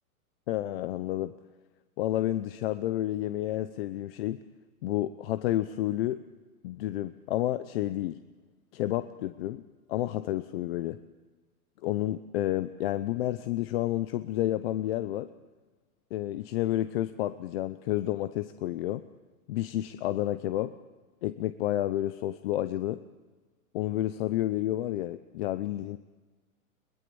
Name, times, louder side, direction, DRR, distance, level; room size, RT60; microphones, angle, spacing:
voice 1, 0.5-1.3 2.0-4.4 4.8-6.2 6.6-8.2 8.7-9.6 9.9-11.0 11.8-15.3 16.1-19.0 19.5-20.7 21.2-23.0 23.7-26.0, left 14 dB, 40° left, 12 dB, 0.7 m, -30 dB
22.0 x 21.0 x 7.0 m, 1.3 s
hypercardioid pair, 150°, 44 cm